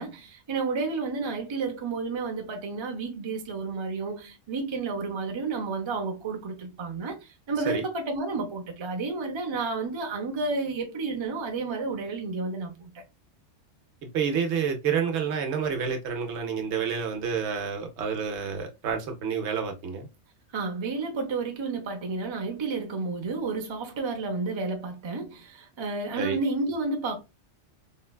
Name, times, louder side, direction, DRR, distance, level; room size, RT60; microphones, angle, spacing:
voice 1, 0.0-12.9 20.5-27.2, right 3 dB, 35° right, 0.5 m, -31 dB
voice 2, 14.0-20.1 26.2-26.4, right 6 dB, 75° right, 1.0 m, -29 dB
3.7 x 2.2 x 2.3 m
omnidirectional pair, 1.2 m